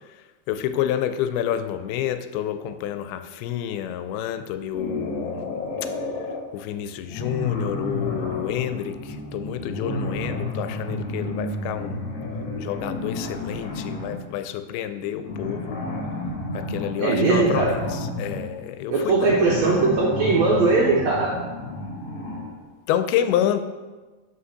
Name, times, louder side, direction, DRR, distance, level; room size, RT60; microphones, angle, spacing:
voice 1, 0.5-5.9 6.5-12.1 12.6-15.8 16.5-19.3 22.9-23.6, left 10 dB, 85° left, 10 dB, 2.5 m, -28 dB
sound 1, 4.7-6.5 7.1-14.2 15.2-22.6, left 2 dB, 55° left, 1.8 m, -31 dB
voice 2, 17.0-17.7 18.9-21.3, right 3 dB, 85° right, -3 dB, 1.5 m, -20 dB
5.6 x 5.6 x 6.5 m, 1.3 s
omnidirectional pair, 4.4 m